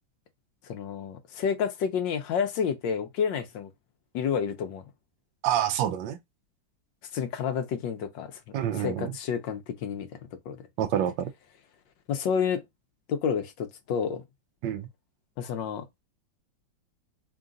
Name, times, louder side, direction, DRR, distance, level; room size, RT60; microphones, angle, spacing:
voice 1, 0.7-3.7 4.1-4.8 7.1-8.4 8.7-10.1 10.5-10.6 12.1-12.6 13.1-14.2 15.4-15.9, left 7 dB, 75° left, 1.4 m, -29 dB
voice 2, 5.4-6.2 8.5-9.1 10.8-11.3 14.6-14.9, right 10 dB, 75° right, 1.3 m, -27 dB
3.8 x 2.4 x 3.7 m
omnidirectional pair, 2.1 m